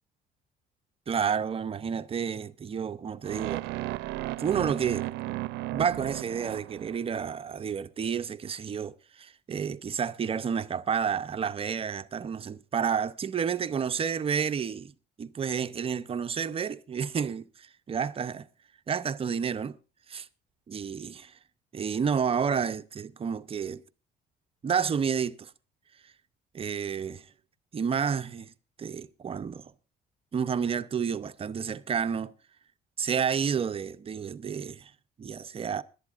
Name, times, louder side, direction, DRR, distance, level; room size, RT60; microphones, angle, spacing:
voice 1, 1.1-3.7 4.4-5.4 5.7-14.9 15.2-18.5 18.9-19.8 20.1-20.3 20.7-21.4 21.7-23.8 24.6-25.5 26.5-27.3 27.7-28.5 28.8-29.7 30.3-32.3 33.0-34.9 35.2-35.8, right 7 dB, 35° right, 0.7 m, -30 dB
sound 1, 3.2-7.3, right 17 dB, 85° right, 0.5 m, -35 dB
21.5 x 11.5 x 2.5 m
cardioid pair, 110°, 17 cm